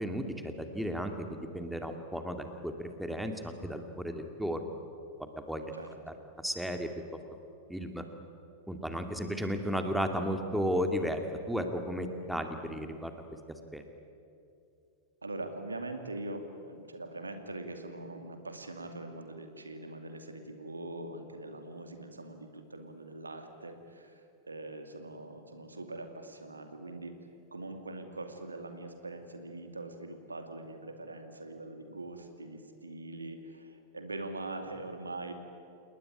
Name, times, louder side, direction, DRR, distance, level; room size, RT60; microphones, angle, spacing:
voice 1, 0.0-4.6 5.5-5.7 6.4-6.9 7.7-8.0 8.7-11.2 11.5-13.1 13.7-13.8, equal, ahead, 6 dB, 2.5 m, -34 dB
voice 2, 15.2-27.2 27.5-35.3, right 2 dB, 80° right, 6 dB, 2.5 m, -42 dB
29.0 x 19.5 x 10.0 m, 2.6 s
figure-of-eight pair, 90°, 0 cm